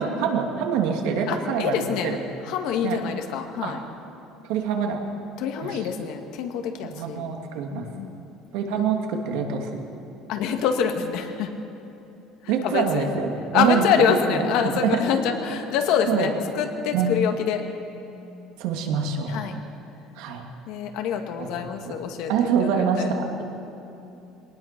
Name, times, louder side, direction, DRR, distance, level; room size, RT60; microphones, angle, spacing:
voice 1, 0.0-2.2 2.8-3.0 3.6-3.7 4.5-5.0 5.6-5.8 6.8-7.8 8.5-9.8 12.5-14.5 14.7-15.0 16.1-16.3 16.9-17.1 18.6-19.4 20.2-20.4 21.4-21.5 21.8-21.9 22.3-23.4, right 6 dB, 75° right, 2 dB, 2.6 m, -25 dB
voice 2, 1.3-2.2 2.4-3.8 5.4-7.3 7.7-8.2 8.7-8.8 10.3-11.5 12.4-13.1 13.5-17.6 19.3-19.5 20.7-23.1, left 7 dB, 60° left, 4 dB, 1.9 m, -26 dB
22.5 x 19.0 x 6.0 m, 2.8 s
cardioid pair, 170°, 0 cm